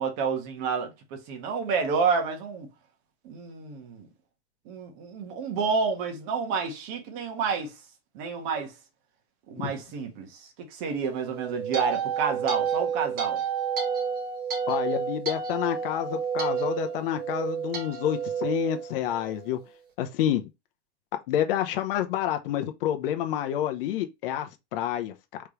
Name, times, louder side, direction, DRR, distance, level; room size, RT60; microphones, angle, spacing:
voice 1, 0.0-2.7 3.2-4.1 4.7-7.7 8.1-8.7 9.5-13.4, right 5 dB, 45° right, 1.5 m, -29 dB
sound 1, 11.2-19.6, right 7 dB, 30° right, 1.5 m, -30 dB
voice 2, 14.7-19.6 20.0-20.4 21.3-25.4, left 11 dB, 55° left, 0.9 m, -28 dB
5.0 x 3.3 x 3.1 m
supercardioid pair, 155°, 33 cm